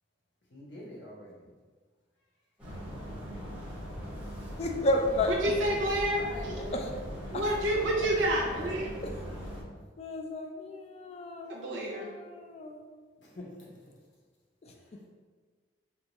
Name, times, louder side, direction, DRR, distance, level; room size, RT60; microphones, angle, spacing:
voice 1, 0.5-1.5 5.1-5.7 6.1-7.0 8.3-8.8 13.2-13.9 14.7-15.1, equal, 70° left, -5 dB, 1.0 m, -45 dB
sound 1, 2.6-9.6, equal, 5° right, 0.9 m, -40 dB
voice 2, 4.6-5.3 6.7-6.8 7.3-7.4 10.0-12.8 14.6-14.7, left 1 dB, 35° left, 3 dB, 0.4 m, -32 dB
voice 3, 5.4-6.2 7.3-8.9 11.4-12.1, right 1 dB, 85° right, -2 dB, 0.5 m, -29 dB
2.7 x 2.2 x 4.0 m, 1.5 s
head